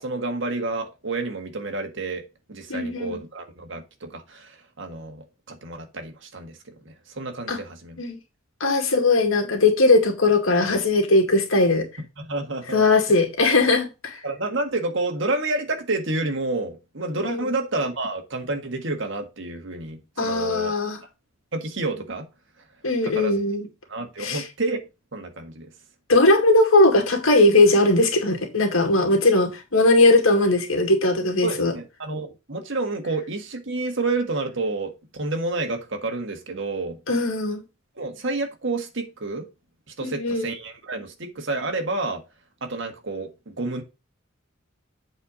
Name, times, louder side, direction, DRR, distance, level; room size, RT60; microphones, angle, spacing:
voice 1, 0.0-8.0 12.2-12.8 13.1-13.2 14.2-20.8 21.5-22.3 22.6-22.7 23.0-23.4 23.9-24.8 25.1-25.7 31.4-37.0 38.0-39.5 40.0-42.2 42.6-43.8, right 2 dB, 65° right, 1.7 m, -29 dB
voice 2, 2.7-3.2 7.5-7.6 8.0-8.2 8.6-11.9 12.7-14.2 17.2-17.5 20.2-21.0 22.8-23.7 24.2-24.4 26.1-31.7 37.1-37.6 40.0-40.5, left 2 dB, 85° left, 2.3 m, -19 dB
8.0 x 4.5 x 5.0 m
head